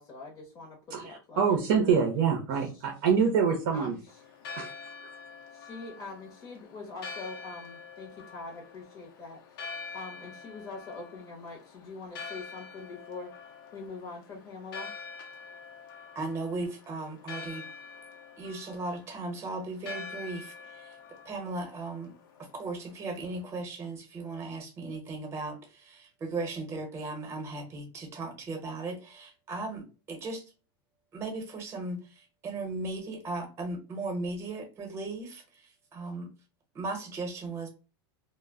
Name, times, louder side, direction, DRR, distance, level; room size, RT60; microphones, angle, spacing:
voice 1, 0.0-2.0 2.5-2.8 3.7-4.0 5.5-9.4 9.9-13.3 13.7-14.9, left 3 dB, 30° left, 0 dB, 0.7 m, -43 dB
voice 2, 0.9-3.9 4.6-4.7 5.0-5.1, right 6 dB, 60° right, 3 dB, 0.6 m, -26 dB
Church bell, 4.1-23.5, left 5 dB, 65° left, 0.7 m, -46 dB
voice 3, 16.1-17.7 18.4-21.0 21.2-22.1 22.5-30.4 31.1-36.3 36.7-37.7, right 2 dB, 20° right, 2 dB, 0.9 m, -37 dB
2.1 x 2.1 x 3.4 m, 0.32 s
supercardioid pair, 140°, 12 cm